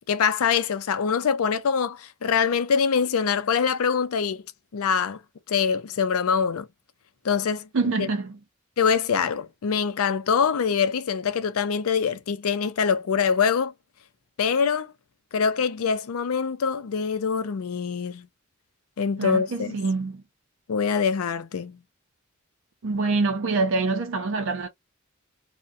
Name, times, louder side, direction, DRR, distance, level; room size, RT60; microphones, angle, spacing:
voice 1, 0.1-4.4 4.7-5.2 5.5-6.7 7.2-7.7 8.0-8.1 8.8-13.7 14.4-14.9 15.3-18.3 19.0-19.8 20.7-21.8, left 6 dB, 85° left, 0.5 m, -24 dB
voice 2, 7.7-8.4 19.2-20.2 22.8-24.7, right 3 dB, 65° right, 0.5 m, -25 dB
2.6 x 2.1 x 2.4 m
head